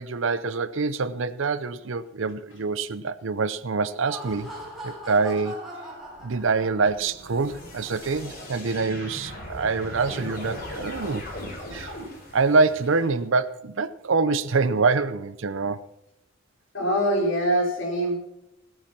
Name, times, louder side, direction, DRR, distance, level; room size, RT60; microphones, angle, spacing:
voice 1, 0.0-4.5 4.8-5.6 6.2-11.2 11.7-11.9 12.3-15.8, right 4 dB, 65° right, 0.6 m, -25 dB
Laughter, 3.8-7.1, right 1 dB, ahead, 4.4 m, -40 dB
sound 1, 6.0-13.1, left 1 dB, 45° left, 4.2 m, -39 dB
voice 2, 16.7-18.3, right 1 dB, 60° left, 4.4 m, -24 dB
17.0 x 8.8 x 5.9 m
head